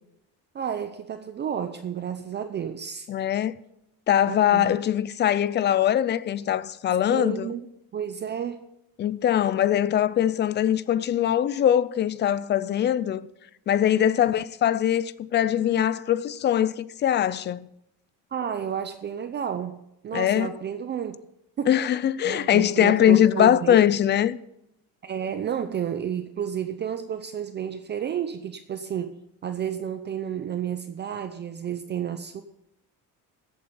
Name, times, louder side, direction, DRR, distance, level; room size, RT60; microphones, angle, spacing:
voice 1, 0.5-3.1 4.3-4.8 7.1-7.7 7.9-8.6 14.0-14.2 18.3-19.8 20.0-21.2 21.6-21.8 22.2-23.8 25.0-29.1 29.4-32.4, right 8 dB, 30° right, 0.6 m, -31 dB
voice 2, 3.1-3.5 4.1-7.5 9.0-13.3 13.7-17.7 20.1-20.5 21.7-24.4, left 10 dB, 30° left, 0.4 m, -22 dB
14.0 x 8.5 x 5.6 m
cardioid pair, 160°, 36 cm